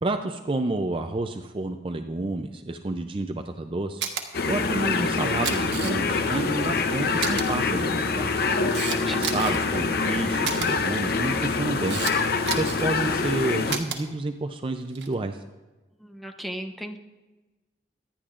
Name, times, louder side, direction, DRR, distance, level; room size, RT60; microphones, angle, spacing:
voice 1, 0.0-4.0 4.5-8.3 9.1-12.0 12.6-15.4, right 2 dB, 30° right, 6 dB, 0.5 m, -30 dB
Camera, 4.0-4.2 5.2-6.2 6.6-6.7 7.2-7.5 8.2-9.6 10.4-10.7 11.4-12.1 12.4-12.9 13.7-14.0 14.9-15.1, right 7 dB, 85° right, 1.3 m, -31 dB
sound 1, 4.3-13.8, left 4 dB, 55° left, 0.7 m, -25 dB
voice 2, 8.5-9.3 16.0-17.0, equal, ahead, 4 dB, 0.8 m, -37 dB
25.0 x 10.5 x 2.5 m, 1.2 s
head